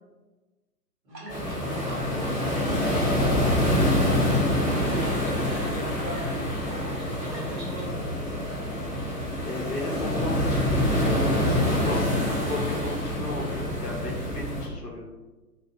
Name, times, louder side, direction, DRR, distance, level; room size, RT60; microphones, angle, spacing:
voice 1, 1.0-2.6 2.8-8.6, equal, 55° right, -7 dB, 1.5 m, -40 dB
sound 1, 1.1-7.8, right 1 dB, 80° right, 1.0 m, -45 dB
sound 2, 1.3-14.7, left 1 dB, 15° right, 1.0 m, -26 dB
voice 2, 9.4-12.1 12.4-15.0, left 2 dB, 70° left, -1 dB, 0.9 m, -35 dB
2.6 x 2.4 x 2.5 m, 1.2 s
figure-of-eight pair, 130°, 50 cm